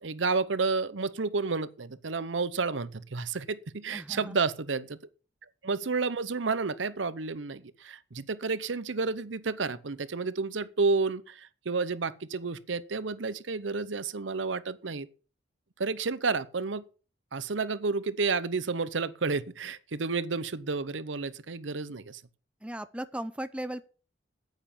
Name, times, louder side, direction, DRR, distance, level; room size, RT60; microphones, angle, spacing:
voice 1, 0.0-5.0 5.6-15.1 15.8-16.8 17.3-22.2, right 4 dB, 85° right, 0.8 m, -31 dB
voice 2, 3.9-4.4 22.6-23.8, right 1 dB, 5° right, 0.6 m, -37 dB
9.3 x 9.3 x 7.1 m
head